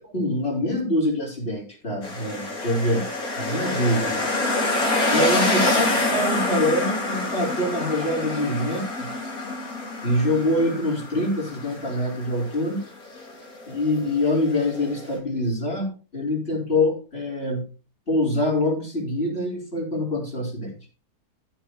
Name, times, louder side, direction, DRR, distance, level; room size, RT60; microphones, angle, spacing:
voice 1, 0.0-3.1 3.4-4.3 5.1-9.1 10.0-12.8 13.7-17.7 18.1-20.7, left 1 dB, 35° left, -3 dB, 5.0 m, -25 dB
sound 1, 2.0-15.2, left 2 dB, 60° left, 3.2 m, -27 dB
14.5 x 7.1 x 3.2 m, 0.35 s
omnidirectional pair, 1.8 m